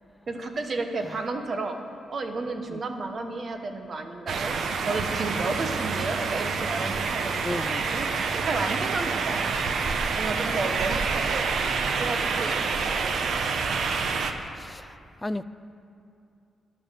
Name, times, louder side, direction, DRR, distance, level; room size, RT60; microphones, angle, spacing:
voice 1, 0.3-1.8 2.1-7.4 7.8-9.6 10.1-11.5 12.0-13.4, right 3 dB, 40° right, 6 dB, 1.1 m, -32 dB
sound 1, 4.3-14.3, right 5 dB, 60° right, 0.8 m, -27 dB
voice 2, 7.4-7.9 14.5-15.0 15.2-15.4, left 1 dB, 10° left, 13 dB, 0.3 m, -34 dB
11.5 x 11.5 x 6.9 m, 2.6 s
cardioid pair, 140°, 0 cm